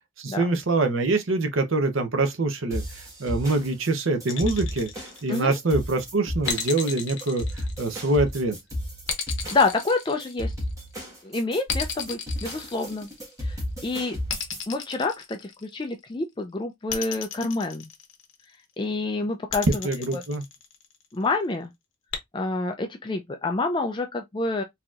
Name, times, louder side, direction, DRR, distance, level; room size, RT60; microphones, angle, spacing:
voice 1, 0.2-4.9 5.2-7.4 7.8-8.6 19.8-20.4, right 2 dB, 80° right, 0.7 m, -24 dB
sound 1, 2.7-14.6, equal, 15° right, 1.2 m, -33 dB
sound 2, 4.3-5.7 6.5-8.3 9.1-10.8 11.7-13.4 14.3-15.9 16.9-18.4 19.5-21.0 22.1-22.2, left 7 dB, 75° left, 1.0 m, -34 dB
voice 2, 9.5-10.5 11.2-13.1 13.4-14.2 14.7-17.9 18.8-19.7 20.1-20.2 21.1-21.7 22.3-24.6, left 3 dB, 25° left, 0.4 m, -27 dB
4.1 x 2.8 x 2.4 m
head